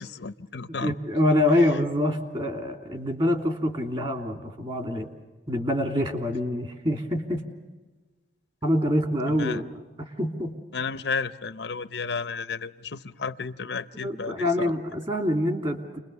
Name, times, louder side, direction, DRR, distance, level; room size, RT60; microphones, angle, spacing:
voice 1, 0.0-0.9 9.3-9.6 10.7-14.8, left 5 dB, 65° left, 0.7 m, -33 dB
voice 2, 0.8-5.1 5.5-7.5 8.6-9.6 10.2-10.5 14.0-16.0, left 1 dB, 30° right, 2.8 m, -25 dB
29.5 x 21.5 x 6.9 m
head